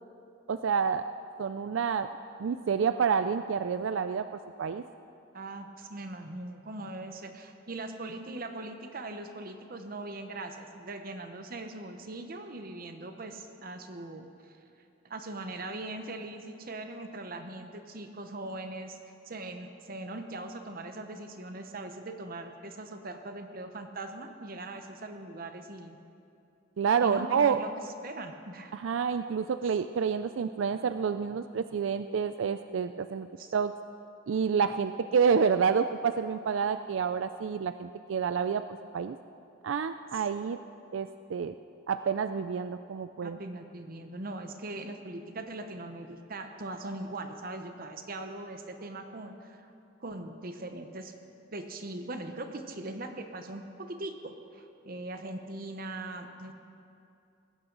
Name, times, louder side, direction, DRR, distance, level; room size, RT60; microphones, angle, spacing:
voice 1, 0.5-1.1 1.4-2.1 2.4-4.8 26.8-27.6 28.7-33.3 33.5-33.7 34.3-38.6 38.9-39.2 39.6-40.6 40.9-41.5 41.9-43.4, right 6 dB, 75° right, 10 dB, 0.4 m, -28 dB
voice 2, 5.3-14.6 15.0-19.0 19.2-26.0 27.0-27.7 28.0-28.8 33.4-33.5 40.1-40.2 43.2-49.7 50.0-51.1 51.5-56.5, right 2 dB, 50° right, 6 dB, 0.9 m, -40 dB
19.5 x 16.0 x 3.9 m, 2.6 s
head